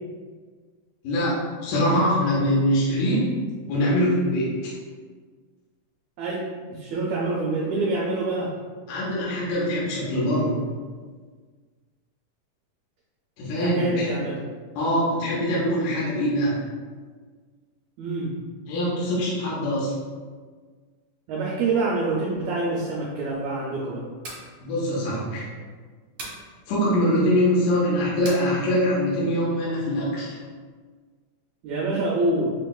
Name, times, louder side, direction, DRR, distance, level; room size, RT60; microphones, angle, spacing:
voice 1, 1.0-3.2 3.7-4.7 8.9-10.6 13.4-14.1 14.8-16.6 18.7-19.9 24.6-25.5 26.7-30.4, equal, 75° left, -7 dB, 2.3 m, -23 dB
voice 2, 6.2-8.5 13.6-14.4 18.0-18.3 21.3-24.1 31.6-32.5, right 2 dB, 80° right, -4 dB, 1.8 m, -26 dB
sound 1, 24.0-24.5 26.2-26.4 28.2-28.5, right 2 dB, 60° right, 1.8 m, -37 dB
5.7 x 2.9 x 2.3 m, 1.5 s
omnidirectional pair, 3.6 m